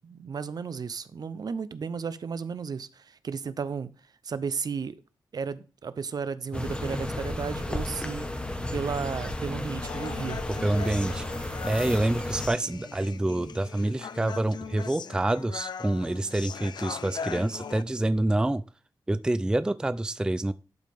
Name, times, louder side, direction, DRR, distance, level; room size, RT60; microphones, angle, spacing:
voice 1, 0.0-3.9 4.2-5.0 5.3-8.3 8.7-10.4, right 6 dB, 55° right, 0.6 m, -34 dB
sound 1, 6.5-12.5, left 1 dB, 15° left, 1.2 m, -33 dB
Human voice, 9.8-17.8, left 6 dB, 65° left, 0.5 m, -40 dB
voice 2, 10.6-18.6 19.1-20.5, right 1 dB, 10° right, 0.4 m, -27 dB
11.5 x 5.1 x 3.5 m
wide cardioid pair, 95°, 8 cm